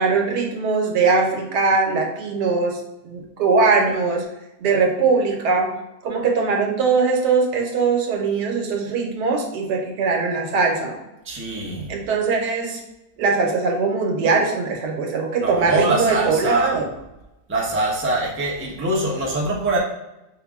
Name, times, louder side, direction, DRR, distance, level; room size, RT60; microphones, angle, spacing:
voice 1, 0.0-4.2 4.6-5.7 6.0-10.9 11.9-12.8 13.2-16.8, right 4 dB, 85° right, 1 dB, 1.4 m, -21 dB
voice 2, 11.2-11.9 15.4-16.8 17.5-19.8, right 2 dB, 15° right, -4 dB, 0.4 m, -23 dB
5.5 x 2.1 x 3.5 m, 0.96 s
omnidirectional pair, 1.7 m